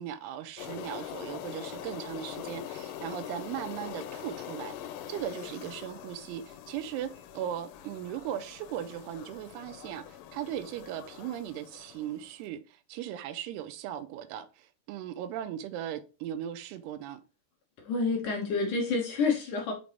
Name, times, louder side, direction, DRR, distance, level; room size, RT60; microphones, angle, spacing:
voice 1, 0.0-17.2, right 10 dB, 85° right, 2.6 m, -38 dB
sound 1, 0.6-12.4, left 11 dB, 90° left, 2.8 m, -43 dB
voice 2, 17.8-19.7, left 4 dB, 65° left, 2.3 m, -28 dB
5.9 x 5.3 x 3.3 m
omnidirectional pair, 4.8 m